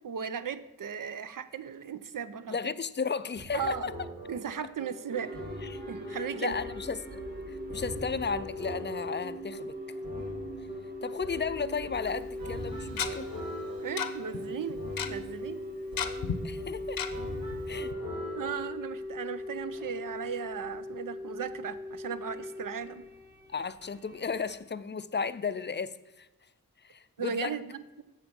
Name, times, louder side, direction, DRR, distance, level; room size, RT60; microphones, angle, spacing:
voice 1, 0.0-2.6 3.5-3.9 4.3-5.4 5.9-6.5 13.8-14.8 15.1-15.6 18.4-23.0 27.2-28.0, right 7 dB, 65° right, 0.5 m, -36 dB
voice 2, 2.5-3.9 5.6-5.8 6.1-7.2 7.5-9.8 10.2-10.4 11.0-13.3 16.4-17.0 17.7-17.9 23.5-26.3 26.8-27.6, left 5 dB, 35° left, 0.4 m, -34 dB
sound 1, 3.3-18.6, equal, 85° right, 2.5 m, -43 dB
sound 2, 5.1-24.5, left 1 dB, 30° right, 1.4 m, -40 dB
Tick-tock, 12.1-12.2 13.0-13.1 14.0-14.1 14.3-14.4 14.7-15.1 16.0-16.4 17.0-17.1 17.5-17.6 17.9-18.0, left 7 dB, 80° left, 0.7 m, -31 dB
8.2 x 6.6 x 5.3 m
cardioid pair, 55°, 34 cm